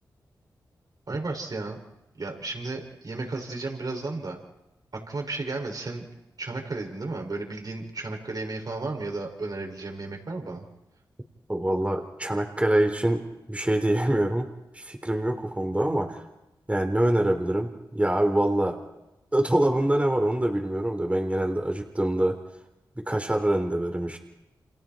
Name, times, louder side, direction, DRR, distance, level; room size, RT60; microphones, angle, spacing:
voice 1, 1.1-1.8 2.2-4.4 4.9-6.0 6.4-10.7, right 3 dB, 50° right, 1 dB, 6.5 m, -33 dB
voice 2, 11.5-13.2 13.5-14.5 14.7-16.2 16.7-18.8 19.3-22.4 23.0-24.2, right 1 dB, 15° right, 4 dB, 3.7 m, -25 dB
29.5 x 27.5 x 4.6 m, 0.96 s
cardioid pair, 55°, 8 cm